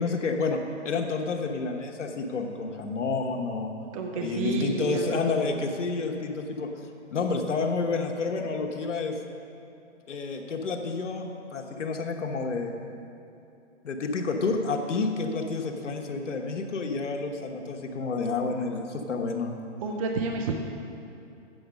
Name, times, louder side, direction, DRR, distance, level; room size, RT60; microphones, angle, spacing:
voice 1, 0.0-3.7 4.1-6.7 7.1-9.2 10.1-12.7 13.8-19.6, left 4 dB, 80° left, 3 dB, 1.3 m, -29 dB
voice 2, 3.9-5.4 19.8-20.5, right 4 dB, 30° right, 2 dB, 0.6 m, -30 dB
8.2 x 7.8 x 6.5 m, 2.7 s
hypercardioid pair, 150°, 36 cm